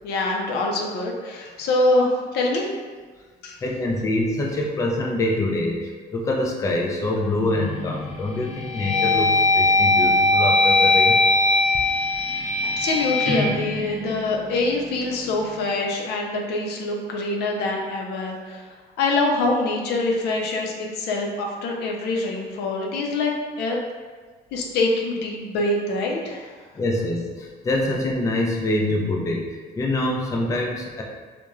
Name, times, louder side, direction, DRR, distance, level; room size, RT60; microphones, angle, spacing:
voice 1, 0.0-2.7 3.4-3.6 12.8-18.7 19.0-23.8 24.5-26.5, left 2 dB, 80° left, -1 dB, 0.5 m, -24 dB
voice 2, 3.6-5.8 6.1-11.2 26.8-27.3 27.6-29.5 29.8-31.0, left 1 dB, 20° left, -1 dB, 0.3 m, -25 dB
sound 1, 7.5-8.0 8.5-14.7, left 2 dB, 45° left, 0.7 m, -20 dB
3.0 x 2.1 x 2.3 m, 1.4 s
cardioid pair, 110°, 17 cm